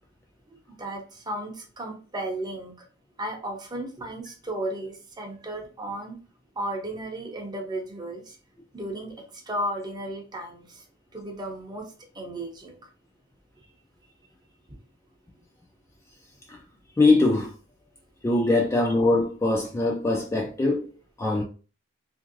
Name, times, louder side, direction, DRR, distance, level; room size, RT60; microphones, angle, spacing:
voice 1, 0.5-2.9 3.2-6.2 6.6-8.4 8.7-10.9 11.1-12.9 14.7-14.8 18.3-18.4, right 1 dB, 20° right, 0.6 m, -34 dB
voice 2, 17.0-17.5 18.2-20.9 21.2-21.4, left 2 dB, 15° left, 0.3 m, -22 dB
2.9 x 2.6 x 2.5 m
head